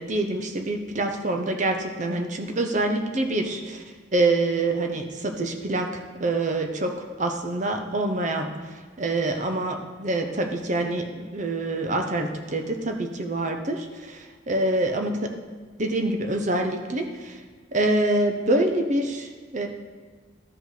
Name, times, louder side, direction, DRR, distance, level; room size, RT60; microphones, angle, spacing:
voice 1, 0.0-3.8 4.1-15.3 15.8-17.4 17.7-19.7, right 2 dB, 35° right, 4 dB, 0.8 m, -26 dB
13.0 x 5.1 x 4.0 m, 1.5 s
head